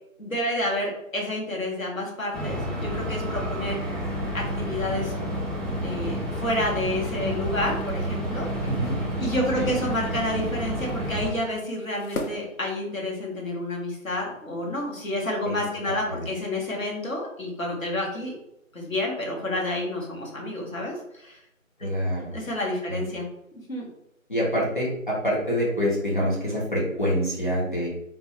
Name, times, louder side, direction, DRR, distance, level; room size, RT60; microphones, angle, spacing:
voice 1, 0.2-3.8 4.3-5.1 5.8-8.5 9.2-18.3 18.7-21.4 21.8-21.9 22.3-23.2 23.7-23.9, left 1 dB, 70° left, -1 dB, 1.4 m, -29 dB
sound 1, 2.3-11.3, equal, ahead, 0.4 m, -30 dB
sound 2, 7.4-13.4, left 2 dB, 85° left, 0.9 m, -42 dB
voice 2, 8.6-9.0 9.5-9.7 15.4-15.6 16.1-16.3 21.8-22.4 22.9-23.0 24.3-27.9, equal, 35° left, -6 dB, 1.2 m, -26 dB
3.5 x 2.3 x 3.2 m, 0.79 s
figure-of-eight pair, 180°, 42 cm